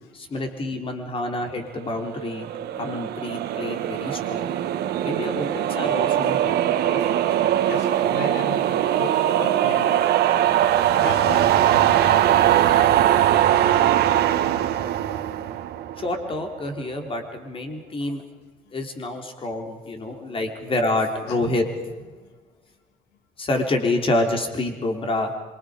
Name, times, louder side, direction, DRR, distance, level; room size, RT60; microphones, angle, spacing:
voice 1, 0.1-4.5 5.0-7.0 16.0-18.2 18.7-22.2 23.4-25.4, left 2 dB, 30° left, 4 dB, 3.6 m, -28 dB
sound 1, 2.0-16.3, right 11 dB, 70° right, 1.6 m, -21 dB
voice 2, 7.7-10.5 11.0-11.5 21.3-21.4, left 6 dB, 90° left, 7 dB, 2.0 m, -35 dB
26.5 x 24.0 x 5.1 m, 1.1 s
cardioid pair, 110°, 17 cm